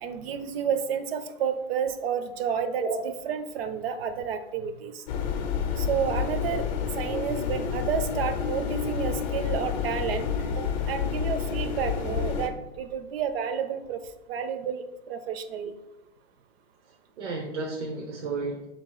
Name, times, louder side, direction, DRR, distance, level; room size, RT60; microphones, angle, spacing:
voice 1, 0.0-2.8 3.3-5.0 5.8-6.6 7.0-10.3 10.9-14.0 14.3-15.7, right 7 dB, 60° right, 10 dB, 0.6 m, -30 dB
sound 1, 5.1-12.5, left 7 dB, 40° left, 0.6 m, -29 dB
voice 2, 17.2-18.6, right 4 dB, 85° right, 1 dB, 0.8 m, -32 dB
3.4 x 2.9 x 4.6 m, 0.95 s
hypercardioid pair, 130°, 35 cm